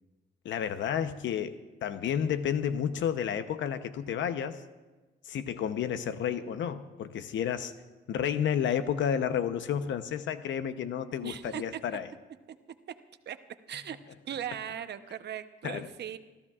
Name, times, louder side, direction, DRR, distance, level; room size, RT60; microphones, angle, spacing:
voice 1, 0.4-4.6 5.3-7.7 8.1-12.1 15.6-15.9, left 8 dB, 70° left, 11 dB, 0.8 m, -31 dB
voice 2, 11.2-11.6 13.3-13.4 13.7-14.0 14.2-16.2, right 9 dB, 60° right, 10 dB, 0.8 m, -38 dB
29.5 x 14.5 x 2.4 m, 1.2 s
cardioid pair, 90°, 20 cm